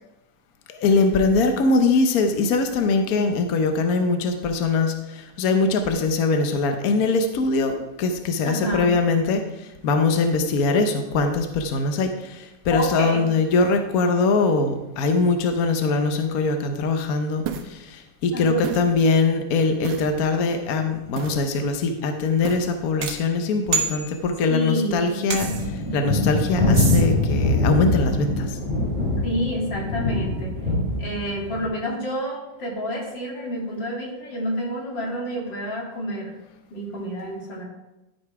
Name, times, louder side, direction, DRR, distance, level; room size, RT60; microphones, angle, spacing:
voice 1, 0.7-25.5 25.9-28.6, left 3 dB, 60° left, 6 dB, 1.2 m, -22 dB
voice 2, 8.4-9.0 12.7-13.2 18.3-18.7 24.5-25.4 29.2-30.5 31.0-36.3 36.7-37.6, equal, 85° left, -2 dB, 3.1 m, -29 dB
sound 1, 17.4-17.7 18.6-18.9 19.8-20.1 21.2-21.4 22.4-22.8 25.3-25.7 26.7-27.1, right 8 dB, 80° right, 1.4 m, -31 dB
sound 2, 23.0-24.6 25.3-25.8, right 4 dB, 50° right, 1.5 m, -29 dB
sound 3, 25.4-31.7, left 2 dB, 5° right, 3.1 m, -23 dB
13.0 x 5.3 x 4.8 m, 0.95 s
omnidirectional pair, 1.9 m